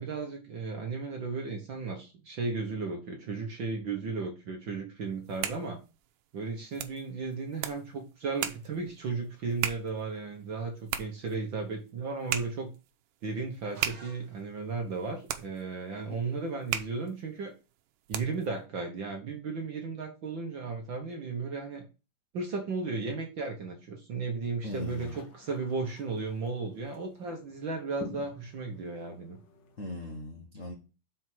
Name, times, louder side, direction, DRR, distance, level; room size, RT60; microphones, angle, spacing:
voice 1, 0.0-5.8 6.3-12.7 13.2-17.5 18.1-21.8 22.3-29.4, right 4 dB, 55° right, 2 dB, 1.4 m, -35 dB
sound 1, 5.1-18.6, right 11 dB, 90° right, 2.3 m, -39 dB
sound 2, 13.7-14.8, right 2 dB, 30° right, 1.5 m, -53 dB
voice 2, 24.6-25.2 29.8-30.7, left 2 dB, 80° left, 2 dB, 0.7 m, -39 dB
sound 3, 24.6-29.8, left 2 dB, 60° left, 1.1 m, -50 dB
6.2 x 4.6 x 6.1 m, 0.31 s
omnidirectional pair, 3.6 m